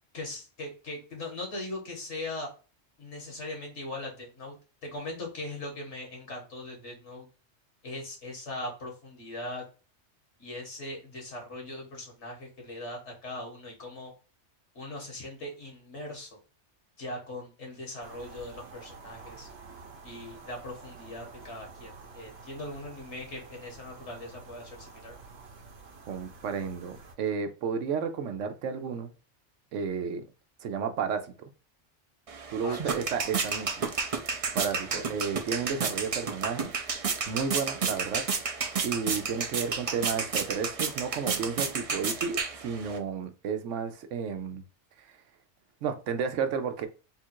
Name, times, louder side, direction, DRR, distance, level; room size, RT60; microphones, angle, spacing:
voice 1, 0.1-2.5 3.0-4.6 4.8-7.3 7.8-9.7 10.4-14.1 14.7-16.4 17.0-19.5 20.0-25.2 32.6-32.8, left 1 dB, 70° left, 1.9 m, -40 dB
sound 1, 18.0-27.2, right 4 dB, 65° right, 1.1 m, -49 dB
voice 2, 26.1-29.1 29.7-30.2 30.6-31.5 32.5-33.9 34.3-36.7 37.3-38.3 38.8-44.6 45.0-45.2 45.8-46.9, right 6 dB, 85° right, 1.0 m, -32 dB
sound 2, 32.3-43.0, right 5 dB, 40° right, 0.5 m, -32 dB
3.8 x 2.4 x 4.4 m
omnidirectional pair, 1.2 m